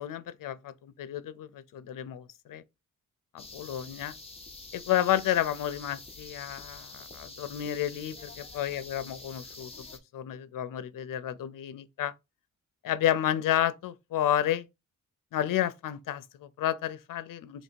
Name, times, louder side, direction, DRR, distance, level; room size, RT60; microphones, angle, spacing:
voice 1, 0.0-2.6 3.3-4.1 4.7-9.7 10.1-12.1 12.8-14.7 15.3-17.6, left 11 dB, 75° left, 0.5 m, -31 dB
sound 1, 3.4-10.0, left 3 dB, 20° left, 0.7 m, -47 dB
2.9 x 2.7 x 4.4 m
wide cardioid pair, 115°, 33 cm